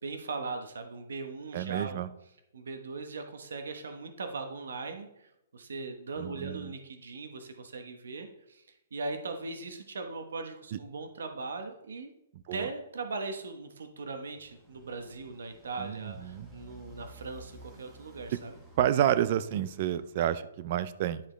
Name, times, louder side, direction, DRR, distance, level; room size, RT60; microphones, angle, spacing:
voice 1, 0.0-2.0 2.5-5.1 5.5-8.6 8.9-12.1 12.5-18.6, right 3 dB, 90° right, 6 dB, 1.1 m, -39 dB
voice 2, 1.5-2.1 6.2-6.7 10.7-10.8 12.5-12.7 15.8-16.5 18.3-18.4 18.8-21.2, right 11 dB, 30° right, 15 dB, 0.4 m, -29 dB
Motorcycle, 14.2-20.2, equal, 5° right, 1.0 m, -54 dB
10.0 x 5.0 x 3.3 m, 0.83 s
hypercardioid pair, 175°, 0 cm